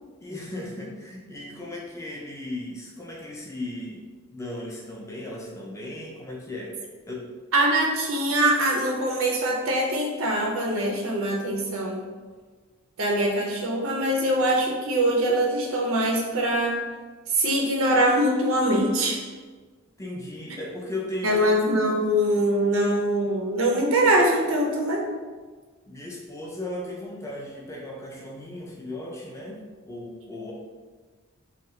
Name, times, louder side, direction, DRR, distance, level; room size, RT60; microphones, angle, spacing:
voice 1, 0.2-4.1 4.3-6.8 7.1-7.3 20.0-21.4 25.9-30.5, left 1 dB, 15° left, -2 dB, 0.3 m, -36 dB
voice 2, 7.5-12.1 13.0-16.8 17.3-19.2 21.2-25.0, right 1 dB, 75° right, 0 dB, 0.5 m, -23 dB
2.8 x 2.2 x 3.0 m, 1.4 s
head